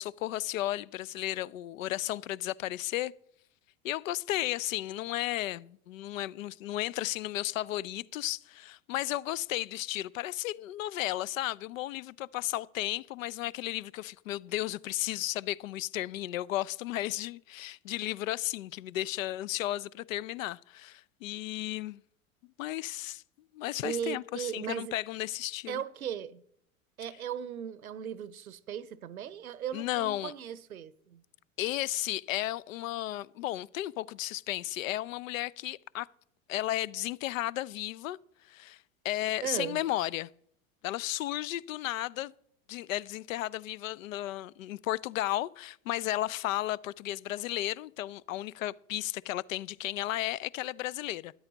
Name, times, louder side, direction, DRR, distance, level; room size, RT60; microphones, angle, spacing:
voice 1, 0.0-3.1 3.8-22.0 22.6-23.2 23.5-25.8 29.7-30.3 31.6-36.1 36.5-38.2 38.5-38.8 39.0-40.3 40.8-42.3 42.7-51.4, left 15 dB, 70° left, 0.5 m, -34 dB
voice 2, 23.8-24.9 25.7-26.4 27.0-31.2 39.4-39.8, right 9 dB, 85° right, 0.7 m, -37 dB
13.0 x 10.0 x 3.9 m
hypercardioid pair, 90°, 42 cm